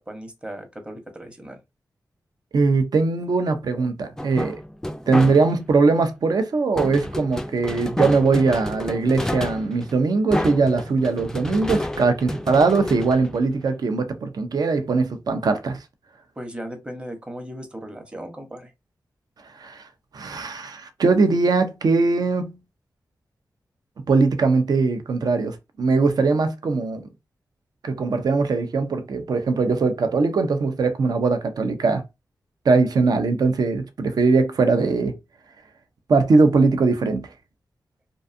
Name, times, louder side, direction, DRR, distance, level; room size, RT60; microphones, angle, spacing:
voice 1, 0.0-1.6 16.4-18.7, right 1 dB, 15° right, 0.8 m, -37 dB
voice 2, 2.5-4.6 5.1-15.8 19.6-19.8 20.1-22.5 24.1-27.0 27.8-32.0 32.7-35.2 36.1-37.2, right 4 dB, 65° right, 0.5 m, -21 dB
sound 1, 4.2-5.7 6.8-13.9, left 1 dB, 5° left, 0.3 m, -30 dB
2.6 x 2.3 x 2.5 m
cardioid pair, 55°, 7 cm